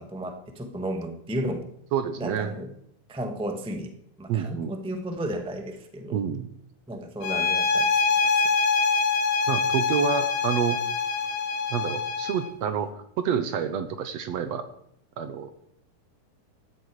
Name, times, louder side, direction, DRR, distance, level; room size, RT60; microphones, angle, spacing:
voice 1, 0.0-1.7 2.2-2.7 3.1-3.9 4.2-6.2 6.9-7.9, right 1 dB, 5° right, 5 dB, 0.5 m, -33 dB
voice 2, 1.9-2.5 4.3-4.7 6.1-6.5 9.5-10.8 11.7-14.6 15.2-15.5, right 7 dB, 65° right, 10 dB, 1.9 m, -28 dB
sound 1, 7.2-12.5, left 5 dB, 65° left, 2.2 m, -24 dB
15.5 x 12.5 x 4.9 m, 0.70 s
omnidirectional pair, 3.6 m